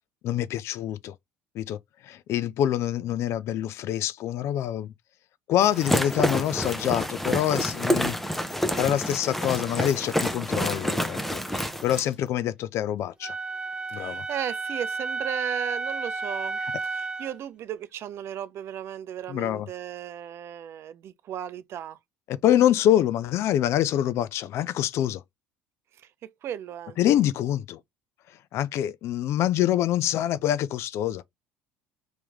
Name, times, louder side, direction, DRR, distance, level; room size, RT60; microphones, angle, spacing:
voice 1, 0.2-1.1 1.6-1.8 2.0-4.9 5.5-8.2 8.8-13.3 13.9-14.2 19.3-19.7 22.3-25.2 27.0-27.8 28.5-31.2, left 11 dB, 55° left, 0.4 m, -25 dB
sound 1, 5.6-12.1, equal, 5° left, 0.8 m, -28 dB
Wind instrument woodwind instrument, 13.2-17.4, right 4 dB, 15° right, 1.0 m, -32 dB
voice 2, 13.9-22.0 26.0-27.0, right 10 dB, 50° right, 0.5 m, -36 dB
3.1 x 3.1 x 3.5 m
hypercardioid pair, 70°, 5 cm